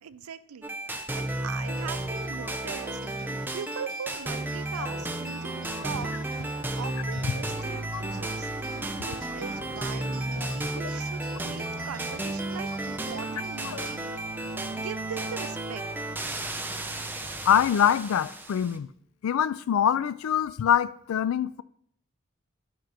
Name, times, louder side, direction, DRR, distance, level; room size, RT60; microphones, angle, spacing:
voice 1, 0.0-3.0 3.5-6.5 6.7-14.1 14.8-15.9, right 7 dB, 90° right, 0.4 m, -41 dB
sound 1, 0.6-18.8, right 2 dB, 10° right, 0.4 m, -33 dB
sound 2, 1.8-16.5, right 3 dB, 45° right, 0.8 m, -50 dB
sound 3, 9.5-17.7, equal, 35° left, 3.0 m, -46 dB
voice 2, 17.4-18.9 19.2-21.6, left 9 dB, 75° left, 0.3 m, -24 dB
10.0 x 5.0 x 2.9 m
head